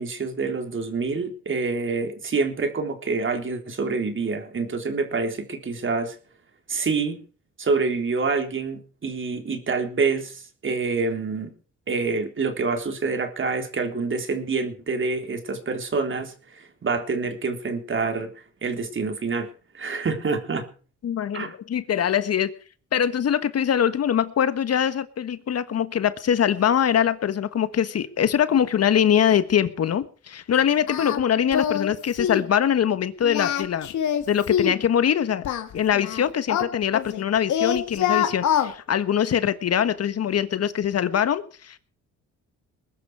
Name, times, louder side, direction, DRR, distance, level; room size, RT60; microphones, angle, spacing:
voice 1, 0.0-6.2 6.7-7.2 7.6-11.5 11.9-19.5 19.7-20.6 21.3-21.5, right 4 dB, 40° right, 6 dB, 3.6 m, -27 dB
voice 2, 21.0-22.5 22.9-33.9 34.3-35.5 35.7-41.8, left 9 dB, 55° left, 13 dB, 1.4 m, -23 dB
Singing, 30.9-31.2 31.5-31.9 32.2-32.5 33.2-34.8 35.4-37.2 37.5-38.7, left 9 dB, 75° left, 2.2 m, -24 dB
21.0 x 11.5 x 4.8 m, 0.40 s
cardioid pair, 90°, 30 cm